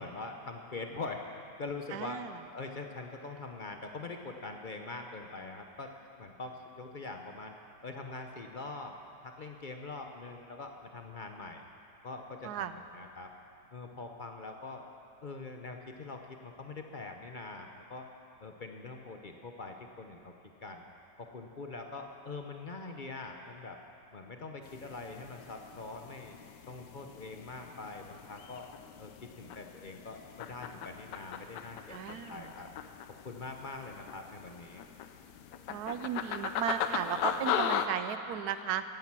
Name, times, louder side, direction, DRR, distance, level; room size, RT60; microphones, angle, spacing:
voice 1, 0.0-2.2 2.5-7.5 7.8-8.9 9.2-11.6 12.0-13.3 13.7-14.9 15.2-18.1 18.4-20.3 20.6-20.8 21.2-23.8 24.1-26.4 26.7-28.7 29.0-32.7 33.2-34.8, left 3 dB, 50° left, 3 dB, 0.6 m, -43 dB
voice 2, 1.9-2.3 12.4-12.7 31.9-32.5 35.7-38.8, right 9 dB, 70° right, 11 dB, 1.1 m, -35 dB
sound 1, 24.6-37.9, left 8 dB, 80° left, 1.3 m, -39 dB
15.5 x 10.5 x 6.0 m, 2.6 s
omnidirectional pair, 1.9 m